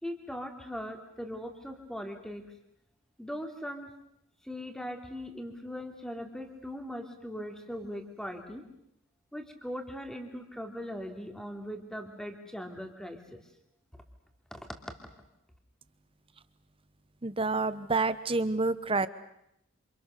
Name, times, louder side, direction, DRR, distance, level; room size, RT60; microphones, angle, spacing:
voice 1, 0.0-2.4 3.2-3.9 4.4-8.6 9.3-13.4 14.5-14.6, equal, 5° left, 4 dB, 2.9 m, -40 dB
voice 2, 17.2-19.1, right 3 dB, 25° right, 14 dB, 1.0 m, -28 dB
28.0 x 27.5 x 6.7 m, 0.78 s
head